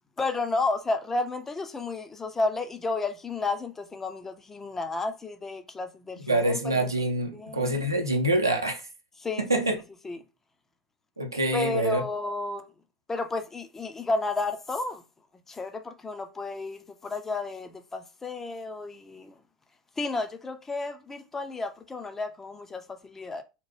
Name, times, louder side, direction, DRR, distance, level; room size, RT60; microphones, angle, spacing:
voice 1, 0.2-6.9 7.3-7.8 9.2-9.8 10.0-10.2 11.5-12.7 13.1-15.0 15.5-19.4 20.0-23.4, left 3 dB, 15° left, 0.4 m, -32 dB
voice 2, 6.3-8.8 9.5-9.8 11.2-12.0, right 1 dB, 85° right, 0.5 m, -25 dB
2.9 x 2.1 x 3.2 m
figure-of-eight pair, 80°, 2 cm